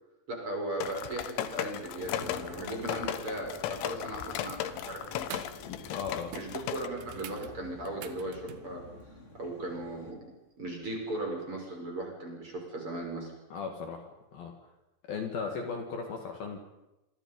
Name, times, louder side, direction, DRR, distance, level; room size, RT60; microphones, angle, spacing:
voice 1, 0.3-5.3 6.3-8.9 9.3-10.2 10.6-13.3, right 1 dB, 25° right, 0 dB, 6.8 m, -37 dB
sound 1, 0.8-6.9, left 12 dB, 75° left, 3.4 m, -36 dB
sound 2, 2.0-10.1, left 2 dB, 20° left, 2.0 m, -48 dB
sound 3, 4.7-4.8 5.2-5.7 5.9-6.0 6.3-8.7 10.7-10.8, right 11 dB, 70° right, 3.3 m, -46 dB
voice 2, 5.6-6.4 13.5-14.6 15.0-16.6, left 5 dB, 55° left, 4 dB, 3.4 m, -37 dB
27.0 x 27.0 x 5.4 m, 0.98 s
omnidirectional pair, 5.6 m